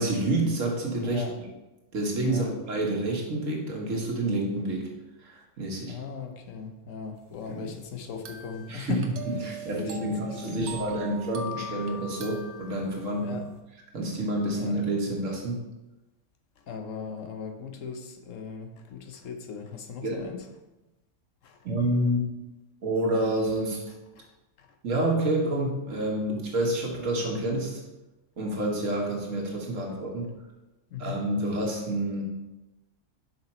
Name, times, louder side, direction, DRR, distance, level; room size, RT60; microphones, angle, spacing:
voice 1, 0.0-1.2 1.9-4.9 5.2-5.9 7.5-7.6 8.7-9.0 9.4-13.3 13.9-15.6 20.0-20.3 21.6-22.3 22.8-23.8 24.8-27.8 28.4-30.3 31.0-32.2, right 1 dB, 80° right, -1 dB, 1.8 m, -28 dB
voice 2, 1.0-1.4 2.2-2.5 5.9-9.0 9.4-11.1 13.2-13.5 14.6-14.8 16.6-20.5 21.4-21.6 24.2-24.3 24.6-24.8 30.9-31.2, left 6 dB, 80° left, 5 dB, 1.2 m, -38 dB
sound 1, 8.2-13.2, right 2 dB, 65° right, 1.0 m, -41 dB
6.1 x 5.1 x 4.3 m, 1.0 s
omnidirectional pair, 1.3 m